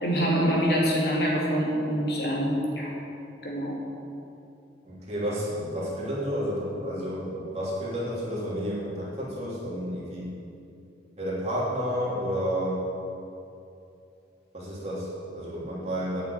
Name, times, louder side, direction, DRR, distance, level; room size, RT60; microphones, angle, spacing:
voice 1, 0.0-2.9 3.4-3.8, equal, 65° left, -3 dB, 2.5 m, -25 dB
voice 2, 4.8-10.3 11.2-12.8 14.5-16.2, equal, 35° right, -7 dB, 3.1 m, -31 dB
9.4 x 6.8 x 8.5 m, 2.7 s
head